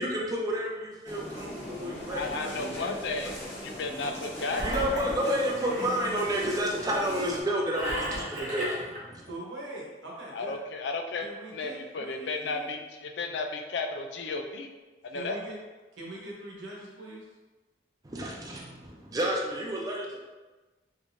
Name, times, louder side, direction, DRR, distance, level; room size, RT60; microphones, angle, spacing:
voice 1, 0.0-3.0 3.2-3.3 4.6-9.3 18.0-20.2, equal, 20° right, -2 dB, 0.5 m, -31 dB
sound 1, 1.0-7.4, equal, 35° left, 1.1 m, -39 dB
voice 2, 2.1-3.3 3.6-5.1 10.3-11.3 11.5-14.7 15.0-15.4, left 3 dB, 65° left, 4 dB, 0.4 m, -34 dB
Engine, 4.4-6.0 7.7-9.0, equal, 40° right, 0.8 m, -34 dB
voice 3, 9.3-10.6 11.2-12.7 15.1-15.6 15.9-17.3, right 1 dB, 90° right, -4 dB, 1.0 m, -42 dB
3.4 x 3.1 x 2.6 m, 1.2 s
head